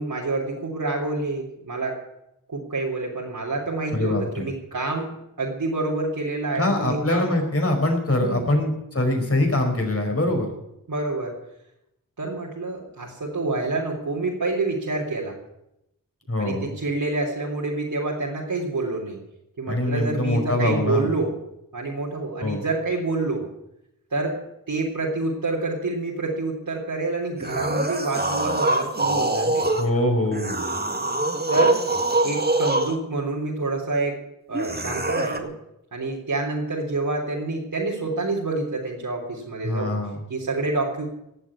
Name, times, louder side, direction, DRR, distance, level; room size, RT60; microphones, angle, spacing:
voice 1, 0.0-2.0 2.5-7.4 8.2-8.6 10.9-11.4 12.2-15.4 16.4-19.2 19.6-21.4 21.7-23.5 24.1-30.0 31.5-31.8 32.2-34.2 34.5-35.6 35.9-40.0 40.3-41.1, right 2 dB, 75° right, -5 dB, 3.6 m, -27 dB
voice 2, 3.9-4.4 6.6-10.5 16.3-16.7 19.7-21.1 22.4-22.6 29.5-30.6 39.6-40.2, left 1 dB, 40° left, 2 dB, 5.2 m, -23 dB
sound 1, 27.4-29.9 30.3-33.0 34.5-35.4, right 2 dB, 30° right, 2.0 m, -24 dB
18.0 x 7.7 x 9.8 m, 0.84 s
wide cardioid pair, 65°, 34 cm